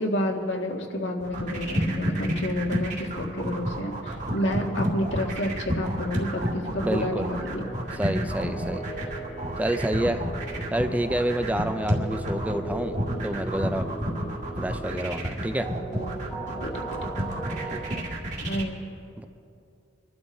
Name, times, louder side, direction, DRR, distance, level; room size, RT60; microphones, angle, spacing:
voice 1, 0.0-7.6 8.4-8.5 16.5-17.3 18.4-18.8, left 1 dB, 80° left, 1 dB, 1.7 m, -30 dB
sound 1, 1.2-18.6, equal, 40° right, 2.0 m, -30 dB
sound 2, 3.5-7.9, right 3 dB, 75° right, 1.1 m, -45 dB
sound 3, 6.8-18.0, right 2 dB, 10° left, 1.0 m, -38 dB
voice 2, 6.8-7.3 7.9-8.9 9.6-10.3 10.7-13.0 13.2-13.9 14.6-15.7 17.7-17.8 19.2-19.3, right 1 dB, 10° right, 8 dB, 0.5 m, -28 dB
25.0 x 12.0 x 4.2 m, 2.7 s
head